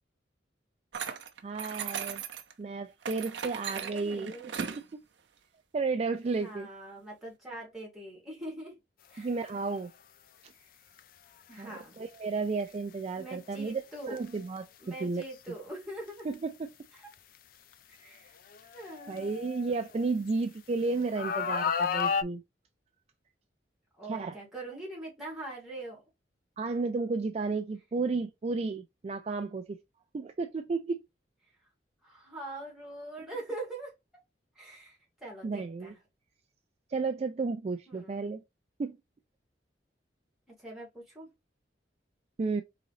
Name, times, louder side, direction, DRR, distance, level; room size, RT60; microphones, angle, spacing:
sound 1, 0.9-2.5 3.0-4.8, right 7 dB, 80° right, 0.6 m, -37 dB
voice 1, 1.4-2.2 2.6-4.3 4.9-5.0 5.7-6.7 9.2-9.9 10.4-10.5 11.6-13.8 14.1-14.7 15.0-15.2 16.2-16.7 19.1-22.4 24.1-24.4 26.6-29.8 30.1-31.0 35.4-35.9 36.9-38.4 38.8-39.0 42.4-42.6, right 4 dB, 35° right, 0.3 m, -32 dB
voice 2, 3.8-4.7 6.4-8.8 9.1-9.3 10.4-10.8 11.5-12.0 13.2-14.2 14.8-16.3 16.9-17.1 18.0-18.4 18.7-19.3 24.0-26.0 32.0-33.9 34.6-36.0 37.9-38.3 40.6-41.3, right 2 dB, ahead, 2.3 m, -43 dB
sound 2, 9.4-9.6 11.0-11.1 14.1-14.3 15.2-15.3 16.3-16.4 17.1-17.2 18.5-20.3 21.2-22.2, left 6 dB, 55° left, 0.4 m, -31 dB
3.8 x 3.8 x 3.1 m
head